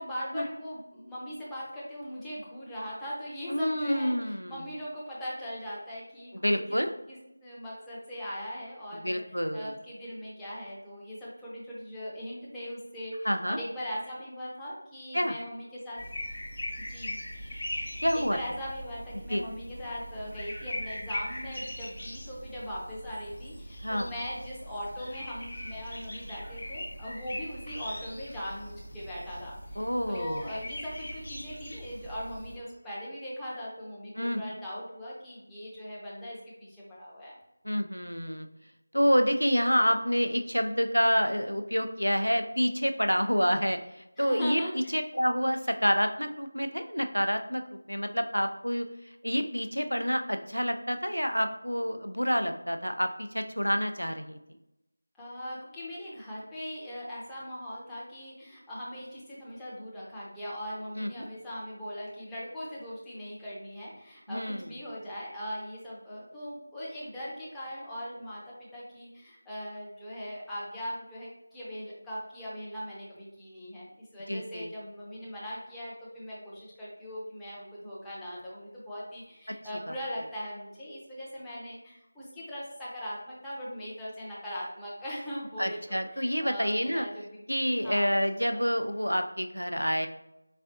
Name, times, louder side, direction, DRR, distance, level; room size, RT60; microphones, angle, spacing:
voice 1, 0.0-6.8 7.1-9.2 9.5-16.0 16.8-17.1 18.1-37.4 44.2-44.9 55.2-87.5 87.8-88.8, equal, 5° left, -9 dB, 0.6 m, -40 dB
voice 2, 3.5-4.6 6.3-6.9 8.9-9.7 13.2-13.6 15.1-15.4 18.0-18.4 19.3-19.4 23.8-24.1 29.8-30.5 34.2-34.4 37.6-38.5 38.9-44.6 44.9-48.9 49.2-54.4 61.0-61.1 64.3-64.7 74.3-74.7 79.9-80.0 85.6-87.1 87.5-90.1, equal, 90° left, 7 dB, 0.4 m, -28 dB
sound 1, 16.0-32.6, left 1 dB, 35° left, 0.8 m, -40 dB
4.1 x 3.4 x 2.6 m, 0.88 s
figure-of-eight pair, 170°, 0 cm